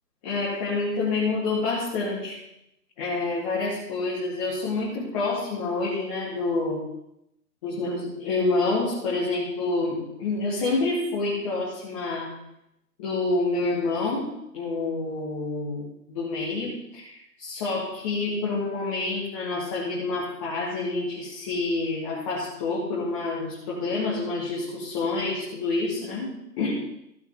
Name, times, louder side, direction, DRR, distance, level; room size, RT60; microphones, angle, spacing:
voice 1, 0.2-2.4 3.0-6.9 7.6-12.3 13.0-26.7, left 3 dB, 20° left, -6 dB, 1.9 m, -28 dB
15.5 x 7.2 x 3.7 m, 0.82 s
figure-of-eight pair, 150°, 49 cm